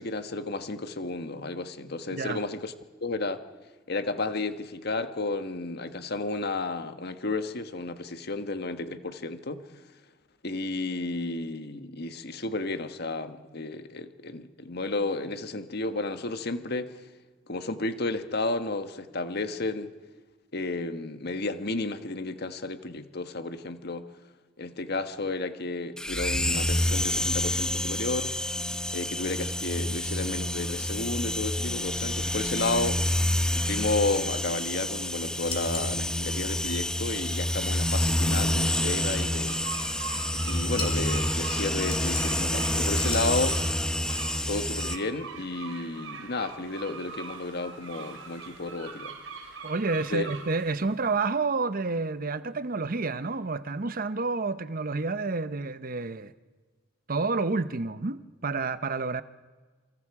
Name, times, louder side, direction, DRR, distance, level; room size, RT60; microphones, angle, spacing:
voice 1, 0.0-2.7 3.0-3.4 3.9-9.6 10.4-16.9 17.5-19.9 20.5-24.1 24.6-28.5 28.9-33.1 33.5-39.7 40.5-43.6 44.5-49.1 50.1-50.3, left 2 dB, 55° left, 1.5 m, -32 dB
sound 1, 26.0-45.0, left 1 dB, 5° left, 1.0 m, -28 dB
sound 2, 35.5-36.0 40.8-41.1 41.9-42.5 43.1-43.6, left 4 dB, 30° left, 4.1 m, -37 dB
sound 3, 39.5-51.1, right 5 dB, 80° right, 3.8 m, -42 dB
voice 2, 49.6-56.3 57.1-59.2, right 3 dB, 45° right, 0.8 m, -29 dB
27.5 x 25.0 x 4.9 m
head